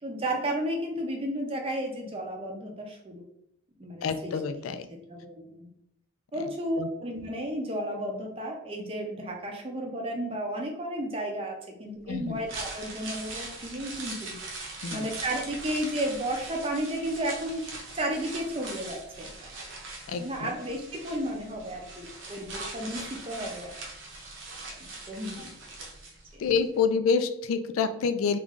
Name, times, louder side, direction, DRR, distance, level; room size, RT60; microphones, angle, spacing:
voice 1, 0.0-3.2 3.8-4.3 4.7-5.7 6.3-14.4 14.9-17.6 17.9-19.5 20.2-23.7 24.7-25.5 26.3-26.4, right 1 dB, 25° right, 1 dB, 0.5 m, -33 dB
voice 2, 4.0-4.9 6.4-6.5 6.8-6.9 12.1-12.4 14.8-15.1 20.1-20.5 26.4-28.4, left 5 dB, 80° left, 10 dB, 0.3 m, -27 dB
sound 1, 12.3-26.5 26.8-26.9, right 2 dB, 65° right, 0.8 m, -41 dB
3.1 x 2.5 x 3.5 m, 0.79 s
head